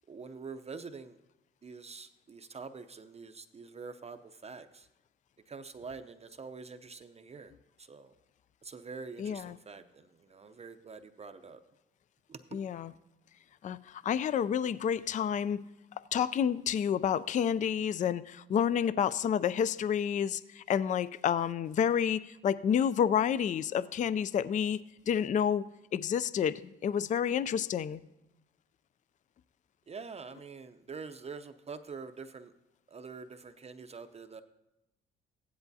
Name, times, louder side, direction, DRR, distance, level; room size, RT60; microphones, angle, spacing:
voice 1, 0.1-1.2 1.6-4.9 5.5-8.2 8.6-11.6 12.3-12.6 29.9-32.5 32.9-34.4, right 4 dB, 30° right, 8 dB, 0.6 m, -46 dB
voice 2, 9.2-9.6 12.5-12.9 13.6-15.6 16.1-24.8 25.1-25.6 25.9-28.0, left 8 dB, 40° left, 17 dB, 0.4 m, -29 dB
15.5 x 10.5 x 2.7 m, 0.95 s
cardioid pair, 90°, 20 cm